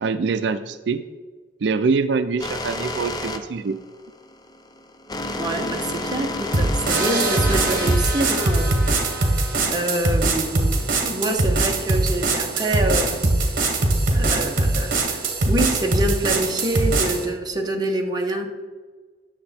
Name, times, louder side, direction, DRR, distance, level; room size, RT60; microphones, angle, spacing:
voice 1, 0.0-1.0 1.6-3.8, right 4 dB, 85° right, 11 dB, 0.4 m, -24 dB
sound 1, 2.4-9.3, left 1 dB, 25° left, 0.6 m, -30 dB
voice 2, 5.4-13.3 14.1-18.5, right 1 dB, 25° right, 2 dB, 1.1 m, -26 dB
sound 2, 6.5-17.3, right 2 dB, 55° right, 1.5 m, -22 dB
Trumpet, 6.9-12.4, equal, 5° left, 0.9 m, -37 dB
9.7 x 6.7 x 4.3 m, 1.4 s
head